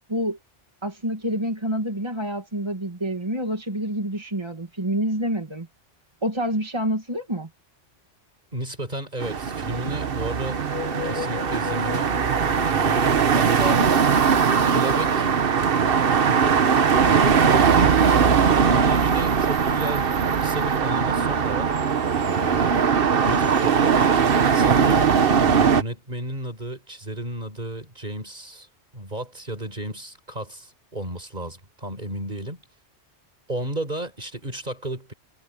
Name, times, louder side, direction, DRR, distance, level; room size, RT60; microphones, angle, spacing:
voice 1, 0.8-5.7 6.2-7.5, equal, 25° right, 2.1 m, -27 dB
voice 2, 8.5-10.6 11.0-12.1 12.4-14.1 14.7-15.3 16.3-20.0 20.4-21.8 22.1-22.8 23.2-24.0 24.5-25.2 25.4-28.7 28.9-32.6 33.5-35.1, right 1 dB, 40° right, 4.9 m, -33 dB
sound 1, 9.2-25.8, right 6 dB, 55° right, 1.2 m, -20 dB
sound 2, 10.5-15.1, left 11 dB, 50° left, 1.0 m, -37 dB
omnidirectional pair, 1.2 m